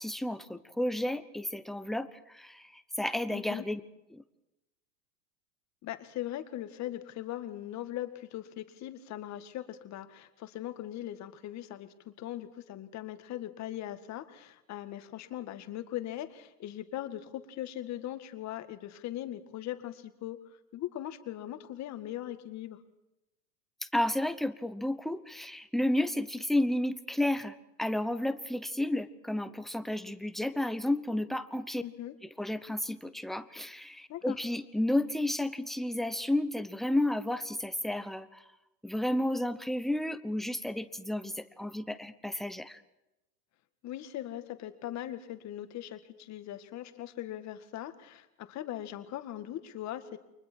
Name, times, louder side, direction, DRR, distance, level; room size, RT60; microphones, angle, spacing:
voice 1, 0.0-3.8 4.1-4.2 23.9-31.8 32.4-38.4 38.8-42.8, left 1 dB, ahead, 12 dB, 0.9 m, -32 dB
voice 2, 3.3-3.7 5.8-20.4 20.7-22.8 31.8-32.1 34.1-34.4 43.8-50.2, left 13 dB, 35° left, 9 dB, 2.0 m, -40 dB
29.5 x 23.5 x 4.6 m, 0.94 s
hypercardioid pair, 110°, 48 cm